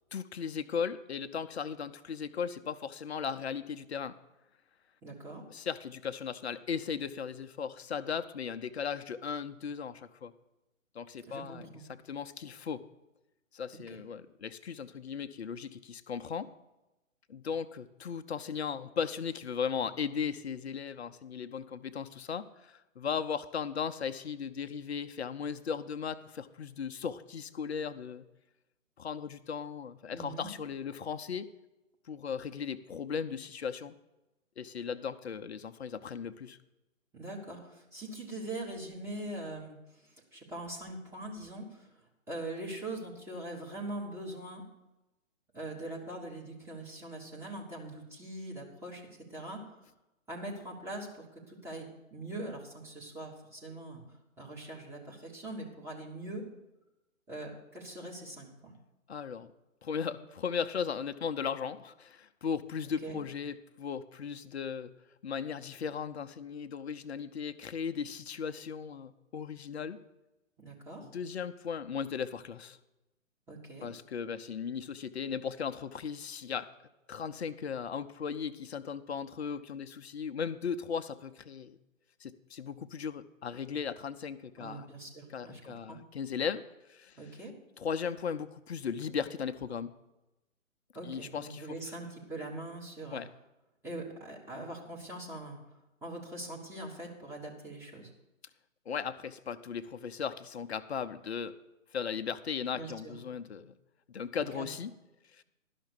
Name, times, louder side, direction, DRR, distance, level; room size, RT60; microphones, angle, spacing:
voice 1, 0.1-4.1 5.5-10.3 10.9-12.8 13.5-16.5 17.3-28.3 29.0-31.5 32.1-33.9 34.6-36.6 59.1-59.5 59.8-64.9 65.2-70.0 71.0-72.8 73.8-76.7 77.1-81.8 82.2-84.9 85.3-87.2 87.8-89.9 91.0-91.8 93.1-93.3 98.9-101.5 101.9-103.7 104.1-104.9 105.3-105.4, left 6 dB, 55° left, 10 dB, 0.6 m, -37 dB
voice 2, 5.0-5.4 11.2-11.9 13.9-14.0 30.1-30.5 37.1-41.9 42.3-44.6 45.5-49.8 50.3-54.0 54.4-56.4 57.3-58.7 63.0-63.2 70.6-71.1 73.5-73.9 84.6-86.0 87.1-87.5 90.9-93.2 93.8-95.6 96.0-98.1 102.7-103.1 104.5-104.7, right 2 dB, 5° right, -4 dB, 1.1 m, -42 dB
11.5 x 5.9 x 6.7 m, 0.98 s
figure-of-eight pair, 135°, 40 cm